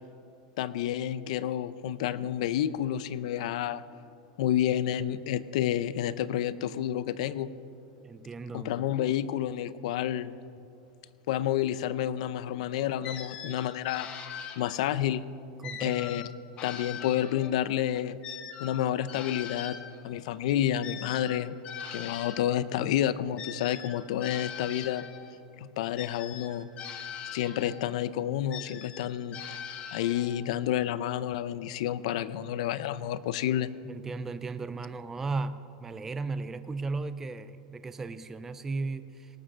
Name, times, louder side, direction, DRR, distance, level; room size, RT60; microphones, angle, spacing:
voice 1, 0.6-3.8 4.4-7.5 8.5-10.4 11.3-14.1 14.6-15.2 15.8-16.2 16.6-18.2 18.6-19.8 20.0-21.6 21.9-25.1 25.6-26.7 27.3-29.4 29.9-33.7, left 11 dB, 60° left, 16 dB, 0.5 m, -29 dB
voice 2, 8.0-8.9 15.6-16.1 33.8-39.4, right 3 dB, 10° right, 11 dB, 0.3 m, -36 dB
sound 1, 13.0-15.1 15.6-17.7 18.2-22.6 23.4-25.3 26.0-27.9 28.5-30.5, left 7 dB, 30° left, 1.0 m, -42 dB
18.5 x 7.6 x 6.2 m, 2.6 s
supercardioid pair, 165°, 4 cm